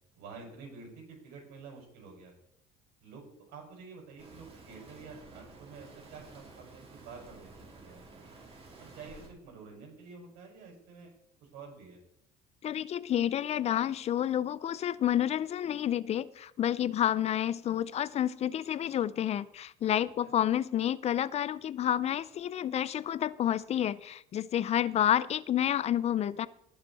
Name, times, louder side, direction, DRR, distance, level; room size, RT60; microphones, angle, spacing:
voice 1, 0.1-2.3 3.0-3.2 3.5-8.3 8.8-11.1 11.4-12.0 20.0-20.3, right 4 dB, 80° right, 0 dB, 5.9 m, -49 dB
sound 1, 4.2-9.3, right 3 dB, 35° right, 4.1 m, -52 dB
voice 2, 12.6-26.5, left 10 dB, 45° left, 18 dB, 0.5 m, -29 dB
19.0 x 7.3 x 4.2 m, 0.74 s
supercardioid pair, 100°, 16 cm